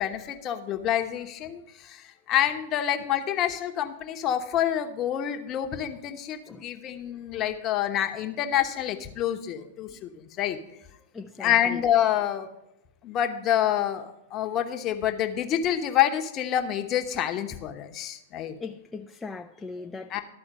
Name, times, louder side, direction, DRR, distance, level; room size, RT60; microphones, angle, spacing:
voice 1, 0.0-10.6 11.4-12.5 13.0-18.5 20.1-20.2, left 11 dB, 35° left, 1.0 m, -27 dB
voice 2, 11.1-11.8 18.6-20.2, left 4 dB, 15° left, 0.4 m, -39 dB
12.5 x 4.3 x 7.5 m
hypercardioid pair, 110°, 0 cm